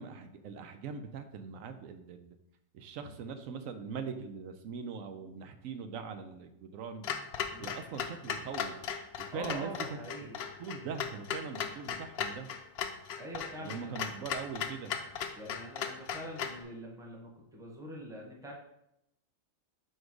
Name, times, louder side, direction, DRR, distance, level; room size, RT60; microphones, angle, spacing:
voice 1, 0.0-2.4 2.7-7.0 7.6-8.7 9.2-10.3 10.6-12.5 13.6-15.0, right 5 dB, 85° right, 8 dB, 1.0 m, -41 dB
Clock, 7.0-16.6, left 7 dB, 60° left, 0.7 m, -37 dB
voice 2, 9.3-10.4 13.2-14.1 15.4-18.5, right 1 dB, 5° right, -2 dB, 1.0 m, -44 dB
4.6 x 4.4 x 4.8 m, 0.81 s
omnidirectional pair, 1.4 m